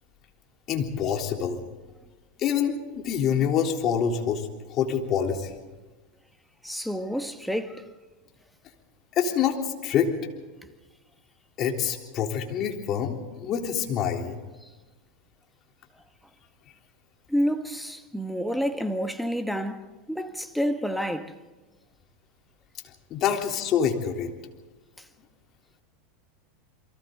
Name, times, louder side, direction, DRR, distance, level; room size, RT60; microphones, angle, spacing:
voice 1, 0.7-1.6 2.4-5.5 9.2-10.1 11.6-14.4 23.1-24.3, left 8 dB, 45° left, 3.5 m, -26 dB
voice 2, 6.6-7.9 17.3-21.3, equal, ahead, 1.7 m, -29 dB
29.0 x 23.5 x 3.9 m
hypercardioid pair, 90°, 0 cm